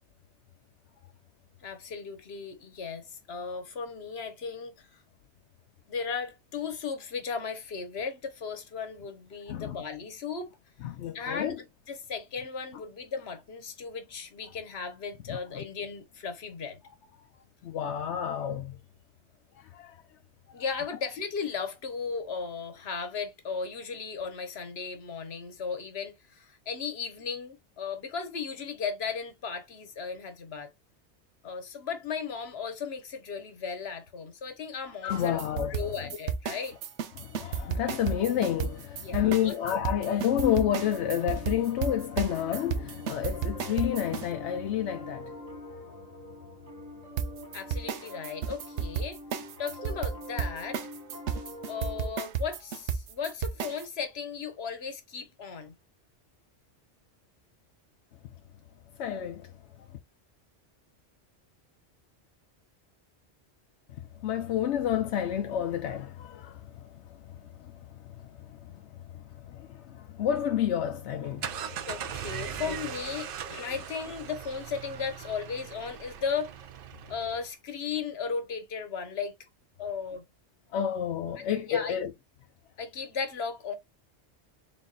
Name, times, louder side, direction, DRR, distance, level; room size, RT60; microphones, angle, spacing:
voice 1, 1.6-5.0 5.9-10.5 11.1-16.8 20.5-30.7 31.4-35.4 35.7-36.8 38.9-39.6 47.5-49.2 49.6-50.8 51.7-55.7 71.9-76.5 77.1-79.3 79.8-80.2 81.7-82.0 82.8-83.7, left 5 dB, 65° left, 1.3 m, -36 dB
voice 2, 10.8-11.6 15.3-15.6 17.6-18.8 19.7-19.9 35.0-35.7 37.2-45.3 59.0-59.5 64.2-68.8 69.1-71.9 80.7-82.1, left 10 dB, 90° left, 0.9 m, -30 dB
sound 1, 35.1-44.3 47.2-53.8, right 7 dB, 80° right, 1.0 m, -33 dB
Piano, 39.6-52.1, equal, 35° right, 1.3 m, -45 dB
sound 2, 71.1-77.5, right 9 dB, 60° right, 0.7 m, -40 dB
4.1 x 4.0 x 2.3 m
omnidirectional pair, 1.1 m